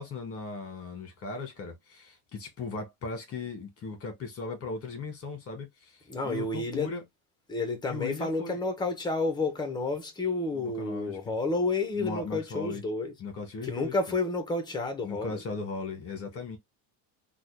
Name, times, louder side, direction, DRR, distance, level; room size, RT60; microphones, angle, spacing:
voice 1, 0.0-6.0 6.2-7.0 7.8-8.6 10.5-11.3 11.9-12.8 13.2-13.9 15.0-16.6, left 4 dB, 30° left, 1.9 m, -37 dB
voice 2, 6.1-6.9 7.5-13.1 13.6-15.4, left 3 dB, 10° left, 1.1 m, -30 dB
3.9 x 2.6 x 3.4 m
cardioid pair, 155°, 45 cm